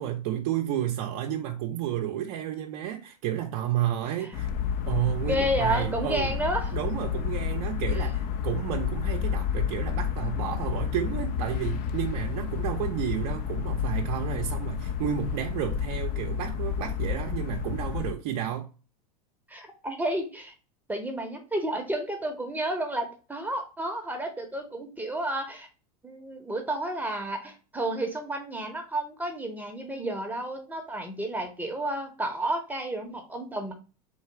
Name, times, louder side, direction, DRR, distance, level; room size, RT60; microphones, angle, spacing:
voice 1, 0.0-4.5 4.9-6.3 6.7-18.7, right 11 dB, 50° right, 0.6 m, -31 dB
sound 1, 4.3-18.1, left 8 dB, 45° left, 0.5 m, -30 dB
voice 2, 5.3-6.7 7.9-8.1 19.5-20.5 20.9-25.7 26.0-33.7, right 1 dB, 10° right, 0.8 m, -31 dB
3.8 x 2.3 x 4.5 m
hypercardioid pair, 95°, 20 cm